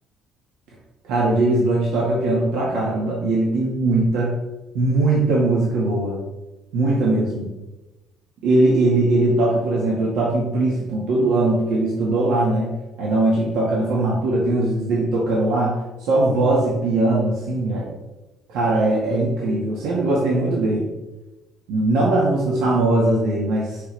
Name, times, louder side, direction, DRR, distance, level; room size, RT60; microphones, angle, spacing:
voice 1, 1.0-4.3 4.7-6.2 6.7-7.5 8.4-12.7 13.0-17.9 18.5-20.9 21.7-23.8, right 2 dB, 85° right, -5 dB, 1.9 m, -20 dB
9.4 x 6.0 x 3.4 m, 1.1 s
cardioid pair, 170°, 0 cm